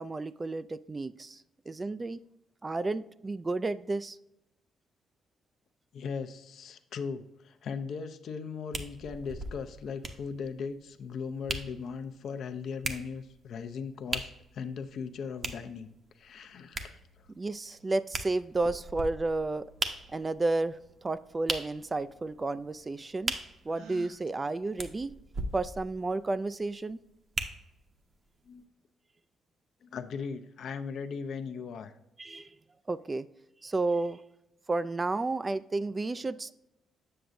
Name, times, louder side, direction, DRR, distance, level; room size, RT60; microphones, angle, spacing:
voice 1, 0.0-2.2 2.6-4.2 17.4-19.7 20.1-23.3 23.7-25.1 25.5-27.0 32.2-32.5 32.9-33.3 33.6-34.2 34.7-36.5, right 2 dB, 25° right, 14 dB, 0.3 m, -32 dB
voice 2, 5.9-15.9 16.2-17.0 28.4-28.6 29.8-31.9, left 5 dB, 65° left, 8 dB, 0.6 m, -38 dB
sound 1, 8.7-28.0 28.6-28.7, right 3 dB, 40° right, 0.8 m, -40 dB
Gasp, 23.6-24.2, right 6 dB, 85° right, 0.7 m, -47 dB
7.6 x 6.8 x 2.6 m, 0.84 s
cardioid pair, 90°, 0 cm